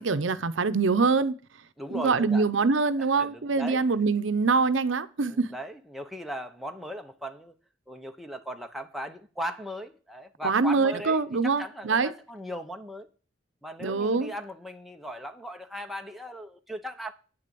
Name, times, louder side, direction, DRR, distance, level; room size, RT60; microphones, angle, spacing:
voice 1, 0.0-1.4 1.9-5.5 10.4-12.1 13.8-14.3, right 4 dB, 75° right, 0.7 m, -24 dB
voice 2, 1.8-2.5 3.2-3.8 5.3-7.5 7.9-13.1 13.6-17.1, equal, ahead, 0.9 m, -38 dB
9.3 x 6.7 x 6.9 m
head